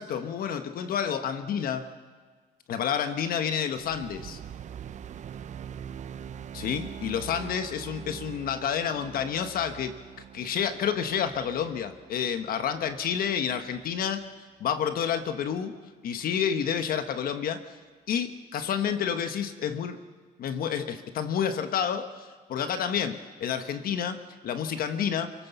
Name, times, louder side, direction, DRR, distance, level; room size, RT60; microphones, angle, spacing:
voice 1, 0.0-1.9 2.7-4.4 6.5-10.0 10.3-14.2 14.6-15.7 16.0-17.8 18.1-20.0 20.4-25.3, left 8 dB, 60° left, 9 dB, 1.2 m, -29 dB
sound 1, 3.8-14.2, right 9 dB, 45° right, 0.7 m, -43 dB
29.0 x 17.5 x 6.9 m, 1.5 s
cardioid pair, 110°, 17 cm